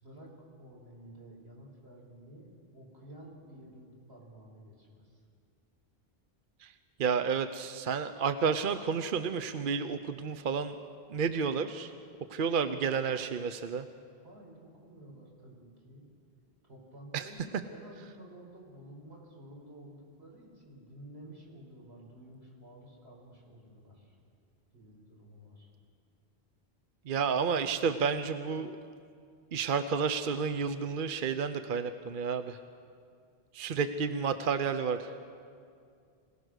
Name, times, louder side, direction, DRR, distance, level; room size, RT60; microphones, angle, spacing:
voice 1, 0.0-5.2 14.2-16.1 16.6-24.2 24.7-25.7, right 1 dB, 85° right, -2 dB, 5.3 m, -52 dB
voice 2, 7.0-10.8 11.1-11.9 12.3-13.9 17.1-17.3 27.0-28.8 29.5-32.6 33.5-35.1, right 6 dB, 55° right, 9 dB, 0.9 m, -31 dB
26.0 x 17.5 x 6.4 m, 2.3 s
omnidirectional pair, 1.1 m